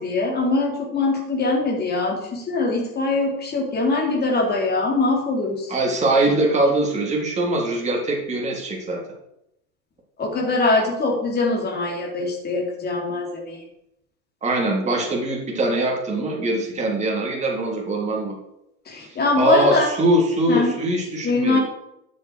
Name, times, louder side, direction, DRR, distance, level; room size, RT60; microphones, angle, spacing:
voice 1, 0.0-5.7 10.2-13.6 18.9-19.9 20.5-20.7 21.2-21.6, left 3 dB, 20° left, -1 dB, 3.8 m, -22 dB
voice 2, 5.7-9.0 14.4-18.4 19.0-21.6, right 1 dB, 15° right, -2 dB, 3.3 m, -22 dB
12.5 x 7.8 x 4.8 m, 0.82 s
hypercardioid pair, 115°, 45 cm